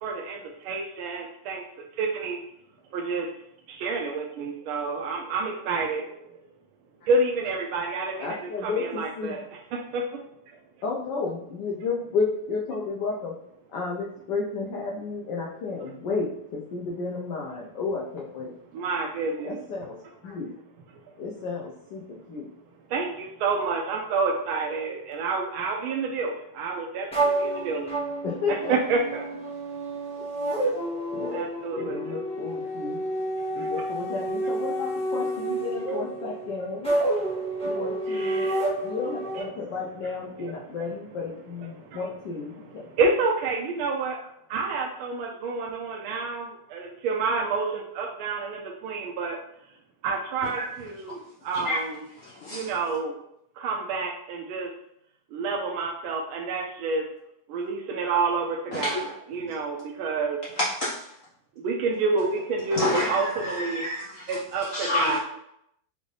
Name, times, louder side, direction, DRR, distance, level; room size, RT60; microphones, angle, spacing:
voice 1, 0.0-1.6 2.0-2.4 2.9-3.3 3.7-6.4 7.1-9.4 9.7-10.0 10.5-10.6 18.7-19.6 22.9-29.3 31.3-32.2 33.2-33.9 37.3-38.9 39.4-39.5 40.4-40.5 41.7-42.0 42.5-44.2 44.5-49.4 50.0-52.0 52.5-53.1 53.6-54.7 55.3-57.0 57.5-60.4 61.6-63.9 64.3-65.2, right 4 dB, 80° right, -1 dB, 1.4 m, -29 dB
voice 2, 8.2-9.4 10.8-13.3 13.7-18.5 19.4-20.0 20.2-20.5 21.2-22.5 28.2-28.7 31.1-31.5 31.8-33.0 33.5-36.9 37.6-38.5 38.8-42.8, left 4 dB, 65° left, -4 dB, 1.2 m, -32 dB
sound 1, 27.1-39.4, right 1 dB, 5° left, 0.7 m, -29 dB
voice 3, 52.2-52.7 58.7-59.0 60.5-61.1 62.7-65.2, left 2 dB, 90° left, -6 dB, 0.7 m, -29 dB
5.2 x 2.6 x 3.2 m, 0.76 s
omnidirectional pair, 2.3 m